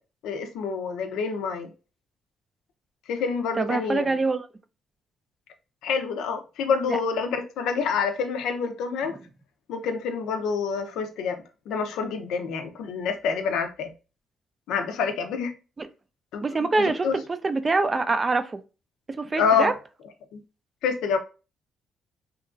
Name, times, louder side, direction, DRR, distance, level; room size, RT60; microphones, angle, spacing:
voice 1, 0.2-1.7 3.1-4.1 5.8-9.2 9.7-13.9 14.7-15.5 16.3-16.7 17.0-17.2 19.4-19.7 20.3-20.4 20.8-21.2, left 5 dB, 85° left, 0.4 m, -27 dB
voice 2, 3.6-4.5 6.9-7.0 15.8-15.9 16.4-18.6 19.1-19.7, right 3 dB, 30° right, 0.3 m, -25 dB
2.9 x 2.4 x 2.4 m
cardioid pair, 90°, 0 cm